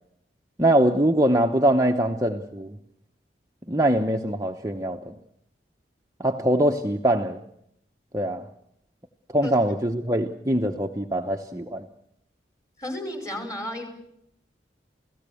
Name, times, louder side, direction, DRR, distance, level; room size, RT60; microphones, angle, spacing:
voice 1, 0.6-2.8 3.7-5.1 6.2-7.4 8.1-8.5 9.3-11.9, right 1 dB, 20° right, 3 dB, 0.9 m, -23 dB
voice 2, 12.8-13.8, left 1 dB, 20° left, 6 dB, 5.2 m, -32 dB
29.0 x 17.0 x 7.0 m, 0.76 s
head